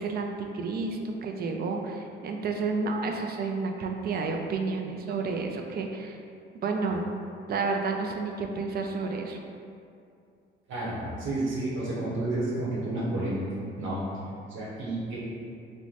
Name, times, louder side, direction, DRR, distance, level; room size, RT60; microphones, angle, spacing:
voice 1, 0.0-6.2 6.6-7.0 7.5-9.4, right 4 dB, 50° right, 3 dB, 0.4 m, -30 dB
voice 2, 10.7-13.4 13.8-14.0 14.5-15.2, right 2 dB, 75° right, -7 dB, 0.9 m, -30 dB
3.1 x 2.1 x 3.8 m, 2.4 s
cardioid pair, 90°, 20 cm